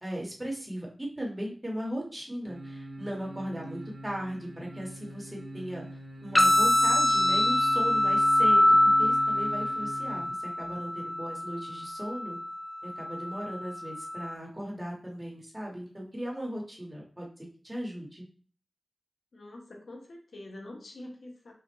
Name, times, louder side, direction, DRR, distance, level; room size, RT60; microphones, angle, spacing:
voice 1, 0.0-5.8 6.2-8.6 9.0-12.4 12.8-17.3 17.6-18.2, equal, 20° right, -3 dB, 1.4 m, -37 dB
sound 1, 2.4-10.3 10.6-10.7, right 1 dB, 80° right, 1.5 m, -42 dB
sound 2, 6.4-14.3, left 1 dB, 15° left, 0.4 m, -25 dB
voice 2, 19.3-21.5, left 1 dB, 80° left, 1 dB, 1.0 m, -45 dB
5.0 x 2.4 x 3.1 m, 0.42 s
wide cardioid pair, 75°, 0 cm